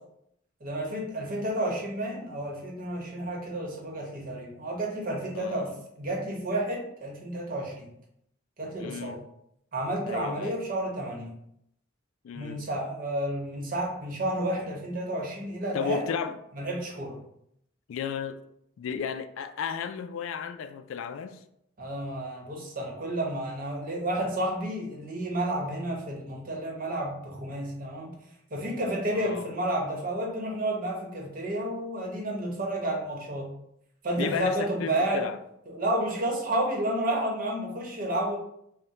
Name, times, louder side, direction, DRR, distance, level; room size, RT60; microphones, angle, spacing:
voice 1, 0.6-5.7 6.0-7.9 8.6-9.2 9.7-11.3 12.3-16.0 16.5-17.2 21.8-28.1 28.5-33.5 34.0-35.3 35.7-38.4, right 1 dB, 45° right, -1 dB, 0.9 m, -31 dB
voice 2, 5.3-5.8 8.8-9.2 10.0-10.6 12.2-12.7 15.7-16.4 17.9-18.4 18.8-21.4 29.1-29.5 34.2-35.4, left 7 dB, 75° left, 11 dB, 0.3 m, -34 dB
5.4 x 2.1 x 2.8 m, 0.75 s
head